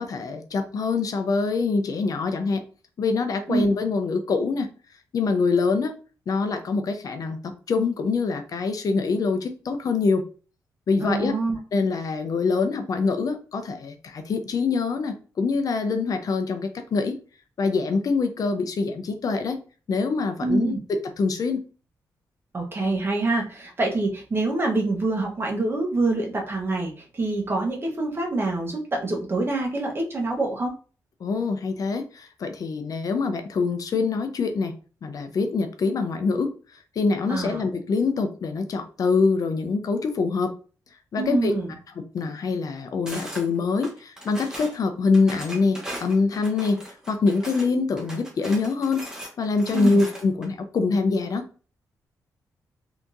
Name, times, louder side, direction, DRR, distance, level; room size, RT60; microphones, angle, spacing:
voice 1, 0.0-2.6 3.0-4.7 5.1-5.9 6.3-10.2 10.9-11.4 11.7-17.2 17.6-19.6 19.9-21.6 31.2-34.7 35.0-36.5 37.0-40.5 41.1-41.5 42.1-49.1 49.4-51.4, left 4 dB, 60° left, 7 dB, 0.5 m, -24 dB
voice 2, 11.0-11.6 20.4-20.8 22.5-30.7 37.3-37.6 41.2-41.7 49.7-50.0, right 2 dB, 35° right, 1 dB, 1.0 m, -25 dB
sound 1, 43.1-43.4 43.8-44.8 45.1-47.7 48.0-50.5, right 1 dB, 10° right, 1.1 m, -38 dB
3.5 x 2.8 x 2.5 m, 0.38 s
cardioid pair, 90°, 7 cm